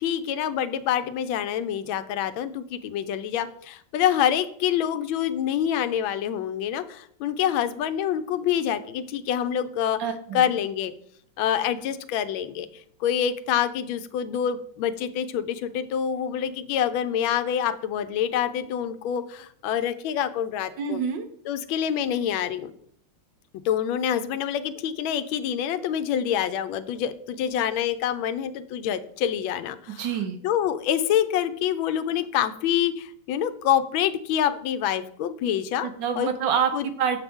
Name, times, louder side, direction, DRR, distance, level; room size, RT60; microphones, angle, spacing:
voice 1, 0.0-10.0 10.3-10.9 11.4-12.7 13.0-21.0 21.5-22.7 23.6-30.1 30.4-35.9 36.2-36.3 36.7-36.8, left 9 dB, 85° left, 12 dB, 1.3 m, -26 dB
voice 2, 10.0-10.4 20.8-21.3 30.0-30.4 35.8-36.7 37.0-37.2, right 7 dB, 70° right, 7 dB, 1.3 m, -26 dB
7.2 x 5.7 x 3.5 m, 0.65 s
omnidirectional pair, 2.2 m